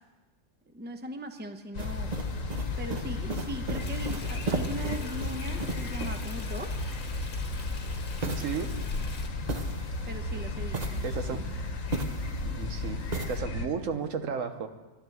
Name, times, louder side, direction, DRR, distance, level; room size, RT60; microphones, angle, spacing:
voice 1, 0.7-2.1 2.8-6.9 8.4-8.5 10.1-11.0 11.3-11.4, right 1 dB, 10° right, 7 dB, 0.7 m, -39 dB
sound 1, 1.7-13.7, left 3 dB, 85° left, 1.5 m, -34 dB
sound 2, 1.8-6.4 8.2-10.1 10.6-12.5 13.1-13.4, right 3 dB, 35° right, 0.9 m, -37 dB
Stream, 3.8-9.3, left 3 dB, 40° left, 1.3 m, -45 dB
voice 2, 8.2-8.7 11.0-11.4 12.4-13.0 13.3-14.7, right 6 dB, 80° right, 8 dB, 1.3 m, -33 dB
11.5 x 11.5 x 7.8 m, 1.2 s
omnidirectional pair, 1.3 m